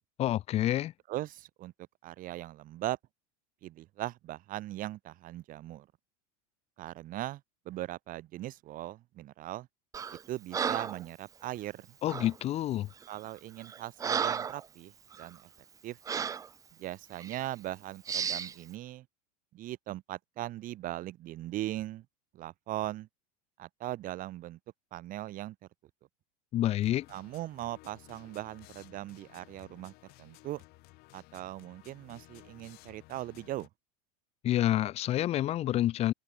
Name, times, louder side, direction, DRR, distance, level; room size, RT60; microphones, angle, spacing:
voice 1, 0.2-0.9 12.0-12.9 26.5-27.1 34.4-36.1, left 13 dB, 35° left, 0.5 m, -28 dB
voice 2, 1.1-1.7 2.0-3.0 3.6-5.9 6.8-7.4 7.7-9.7 10.3-11.9 13.1-14.9 15.2-15.4 15.8-16.0 16.8-19.0 19.5-22.0 22.3-23.1 23.6-24.6 24.9-25.6 27.1-29.9 30.2-30.6 31.1-33.7, right 15 dB, 45° right, 4.1 m, -39 dB
Breathing, 9.9-10.2 10.5-11.0 12.1-12.3 13.0-13.2 13.6-14.6 15.1-15.3 16.1-16.5 17.2-17.4 18.1-18.5, right 7 dB, 20° right, 0.4 m, -33 dB
sound 1, 26.8-33.7, left 22 dB, 55° left, 7.1 m, -56 dB
open air
supercardioid pair, 110°, 19 cm